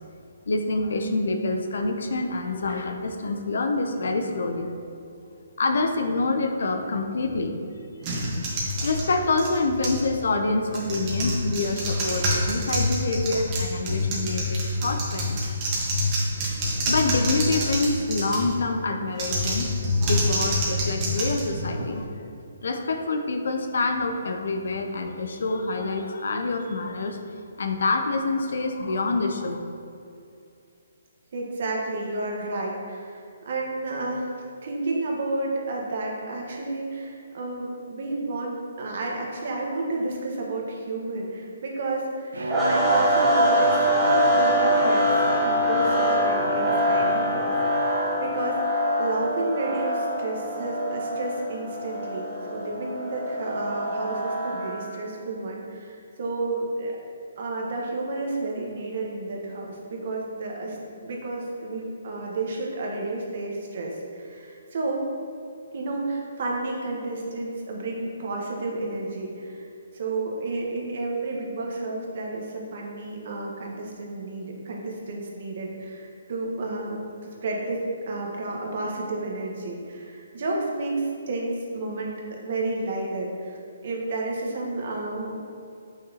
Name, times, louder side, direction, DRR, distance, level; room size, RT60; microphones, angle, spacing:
voice 1, 0.5-4.7 5.6-7.6 8.8-15.7 16.9-19.7 20.0-22.0 22.6-27.2 27.6-29.6, left 3 dB, 70° left, 6 dB, 0.6 m, -26 dB
sound 1, 8.0-10.1 10.7-18.6 19.1-22.0, equal, 30° right, 1.4 m, -27 dB
voice 2, 31.3-45.1 45.4-57.0 57.4-65.0 65.7-69.7 69.9-77.0 77.4-83.6 83.8-85.4, right 2 dB, 55° right, -1 dB, 1.3 m, -31 dB
Bowed string instrument, 42.3-48.0, right 2 dB, 75° right, 0.7 m, -34 dB
sound 2, 42.5-54.9, equal, 10° right, 1.3 m, -24 dB
6.7 x 5.8 x 2.9 m, 2.5 s
hypercardioid pair, 145°, 0 cm